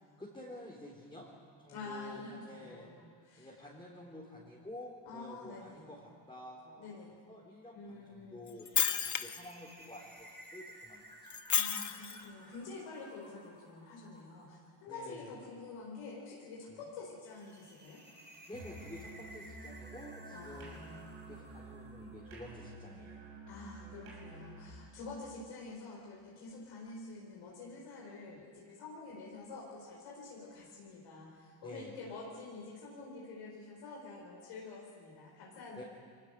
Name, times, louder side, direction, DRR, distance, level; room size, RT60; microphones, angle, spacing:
voice 1, 0.2-1.3 1.6-2.9 3.4-7.0 7.3-11.0 14.9-15.3 16.7-16.8 18.5-20.8 21.2-23.3 31.6-31.9 35.8-35.9, left 1 dB, 10° left, -5 dB, 4.0 m, -50 dB
voice 2, 1.7-3.5 5.0-5.8 6.8-7.1 7.7-8.5 11.5-18.0 20.3-21.1 23.5-35.8, left 3 dB, 85° left, -4 dB, 4.7 m, -48 dB
Shatter, 8.5-9.5 11.3-12.2, left 8 dB, 35° left, 1.0 m, -32 dB
sound 1, 8.5-22.8, right 1 dB, 20° right, 4.6 m, -56 dB
Musical instrument, 18.5-24.8, right 2 dB, 80° right, 6.7 m, -50 dB
22.0 x 19.0 x 6.6 m, 2.1 s
supercardioid pair, 70°, 50 cm